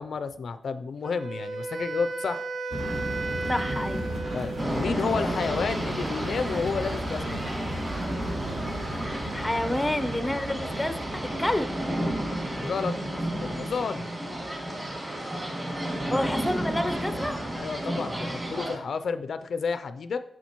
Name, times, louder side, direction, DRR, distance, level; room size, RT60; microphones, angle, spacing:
voice 1, 0.0-2.4 4.3-7.4 12.5-12.9 13.4-14.1 17.5-20.2, left 5 dB, 65° left, 11 dB, 0.4 m, -31 dB
Wind instrument woodwind instrument, 1.0-5.1, right 3 dB, 50° right, 0.5 m, -34 dB
sound 1, 2.7-11.9, right 1 dB, 70° right, 2.2 m, -34 dB
voice 2, 3.5-4.0 9.3-11.7 16.0-17.4, left 1 dB, 10° left, 10 dB, 0.5 m, -29 dB
sound 2, 4.6-18.8, right 1 dB, 20° right, 2.4 m, -32 dB
7.1 x 6.1 x 2.9 m, 0.72 s
cardioid pair, 100°, 0 cm